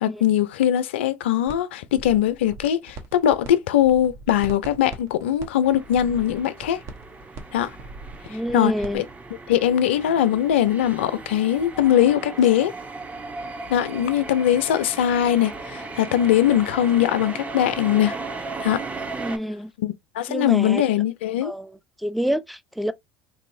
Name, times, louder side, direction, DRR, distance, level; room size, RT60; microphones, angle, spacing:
voice 1, 0.0-6.8 7.5-7.7 8.5-9.0 9.5-12.7 13.7-18.2 18.6-18.9 19.8-21.5, left 11 dB, 75° left, 0.4 m, -21 dB
sound 1, 1.5-1.6 1.9-3.5 3.8-9.0, right 3 dB, 55° right, 0.9 m, -40 dB
sound 2, 5.6-19.4, right 3 dB, 20° right, 0.7 m, -36 dB
voice 2, 8.3-9.0 19.1-19.7 20.3-20.8 21.4-21.7 22.0-22.9, equal, ahead, 0.4 m, -27 dB
3.0 x 2.7 x 2.5 m
hypercardioid pair, 70°, 6 cm